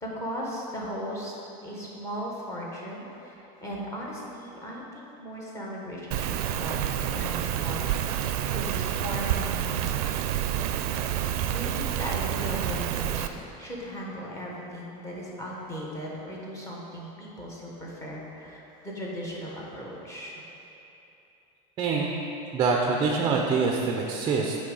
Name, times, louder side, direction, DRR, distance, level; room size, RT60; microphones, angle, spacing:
voice 1, 0.0-1.3 1.6-8.0 8.5-10.0 11.0-13.2 13.6-20.4, equal, 15° left, -4 dB, 1.0 m, -37 dB
Rain, 6.1-13.3, right 10 dB, 90° right, 0.4 m, -28 dB
voice 2, 21.8-22.1 22.5-24.6, right 4 dB, 25° right, 0 dB, 0.4 m, -25 dB
8.2 x 3.1 x 5.3 m, 3.0 s
cardioid pair, 165°, 19 cm